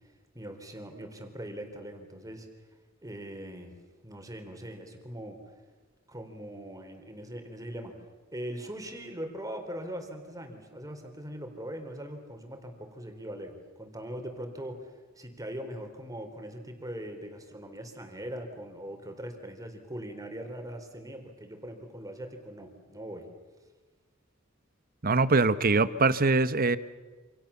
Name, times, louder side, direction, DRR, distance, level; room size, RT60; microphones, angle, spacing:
voice 1, 0.3-2.5 3.0-3.8 4.0-5.4 6.1-8.0 8.3-14.9 15.2-23.3, equal, 15° right, 5 dB, 4.1 m, -41 dB
voice 2, 25.0-26.8, right 3 dB, 45° right, 14 dB, 1.1 m, -23 dB
28.5 x 27.5 x 7.2 m, 1.3 s
head